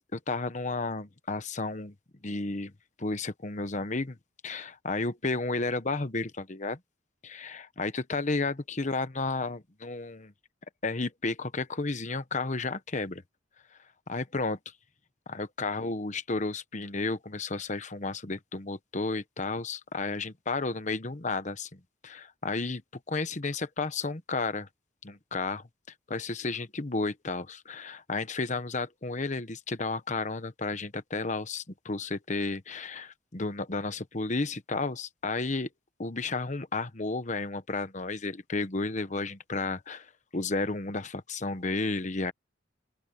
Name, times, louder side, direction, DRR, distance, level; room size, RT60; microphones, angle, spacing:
voice 1, 0.0-1.9 2.2-2.7 3.0-4.2 4.4-6.8 7.2-10.3 10.8-13.2 14.1-14.6 15.3-22.8 23.1-24.7 25.0-25.6 26.1-35.7 36.0-42.3, left 3 dB, 40° left, 1.1 m, -32 dB
open air
head